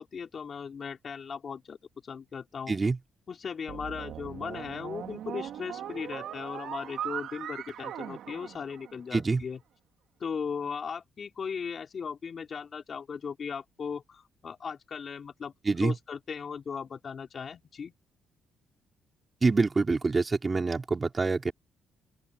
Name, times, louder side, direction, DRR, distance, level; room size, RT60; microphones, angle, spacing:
voice 1, 0.0-1.8 2.0-2.7 3.3-9.6 10.2-15.5 15.8-17.9, left 6 dB, 45° left, 4.3 m, -37 dB
voice 2, 2.7-3.0 9.1-9.4 15.7-16.0 19.4-21.5, right 3 dB, 30° right, 3.9 m, -26 dB
sound 1, 3.7-9.2, right 10 dB, 75° right, 3.2 m, -39 dB
open air
cardioid pair, 90°, 0 cm